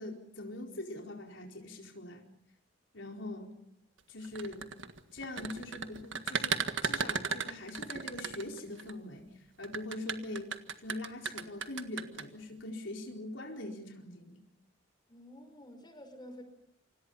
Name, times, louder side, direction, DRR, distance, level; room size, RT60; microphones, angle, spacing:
voice 1, 0.0-2.3 2.9-3.5 4.1-4.7 5.1-14.4, left 1 dB, 85° left, 1 dB, 4.4 m, -43 dB
sound 1, 4.2-8.9 9.6-12.2, right 5 dB, 80° right, 1.8 m, -35 dB
voice 2, 15.1-16.4, left 1 dB, 25° left, 7 dB, 5.5 m, -50 dB
28.5 x 26.0 x 5.6 m, 0.78 s
head